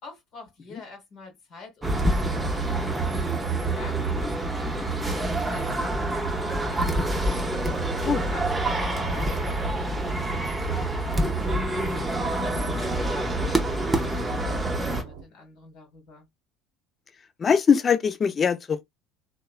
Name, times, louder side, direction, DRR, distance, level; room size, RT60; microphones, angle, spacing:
voice 1, 0.0-3.1 3.7-7.2 8.2-11.8 12.4-16.3, left 3 dB, 60° left, 1.2 m, -46 dB
sound 1, 1.8-15.0, right 2 dB, 15° right, 0.7 m, -26 dB
sound 2, 6.1-15.2, right 5 dB, 80° right, 0.7 m, -42 dB
voice 2, 17.4-18.8, left 6 dB, 35° left, 0.4 m, -21 dB
2.9 x 2.0 x 2.2 m
hypercardioid pair, 70°, 0 cm